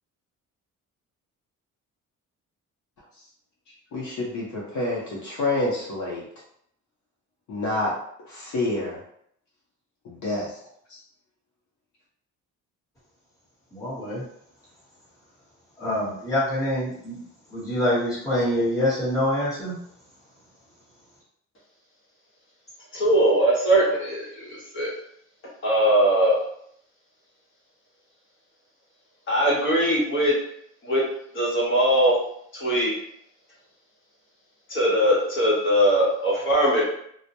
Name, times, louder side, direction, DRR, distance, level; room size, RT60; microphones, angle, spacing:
voice 1, 3.9-6.3 7.5-7.9 8.2-9.0 10.0-10.5 10.9-11.0, left 2 dB, 70° left, -4 dB, 0.7 m, -28 dB
voice 2, 13.7-14.2 15.8-17.2 17.5-19.8, left 1 dB, 10° left, -10 dB, 1.1 m, -25 dB
voice 3, 22.9-24.9 25.6-26.4 29.3-30.3 30.8-31.0 31.3-32.2 32.5-33.0 34.7-36.8, right 1 dB, 40° left, -5 dB, 0.9 m, -21 dB
2.1 x 2.1 x 2.7 m, 0.69 s
cardioid pair, 160°, 31 cm